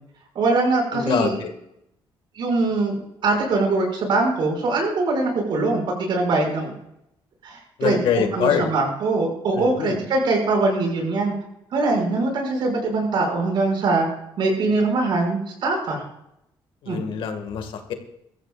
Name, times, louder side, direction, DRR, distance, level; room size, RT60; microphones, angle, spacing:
voice 1, 0.3-1.4 2.4-6.7 7.4-11.3 11.7-14.1 14.4-16.0 16.9-17.0, right 3 dB, 60° right, 1 dB, 6.4 m, -22 dB
voice 2, 0.9-1.5 7.8-8.7 9.5-10.0 16.8-17.9, left 7 dB, 70° left, 6 dB, 2.1 m, -24 dB
22.5 x 14.5 x 2.5 m, 0.79 s
cardioid pair, 165°, 9 cm